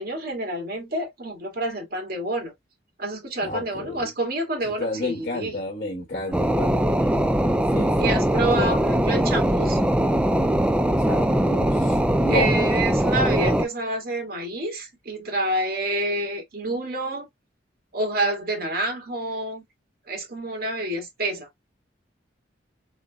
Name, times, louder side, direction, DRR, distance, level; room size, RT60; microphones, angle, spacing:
voice 1, 0.0-2.5 3.0-5.5 8.0-9.8 12.3-17.3 17.9-19.6 20.1-21.5, right 2 dB, 55° right, 2.0 m, -28 dB
voice 2, 3.4-4.1 4.8-7.1 7.7-8.2 8.6-8.7 11.0-12.5, left 1 dB, 50° left, 1.2 m, -31 dB
sound 1, 6.3-13.7, right 1 dB, 5° right, 0.4 m, -21 dB
4.0 x 3.8 x 2.2 m
head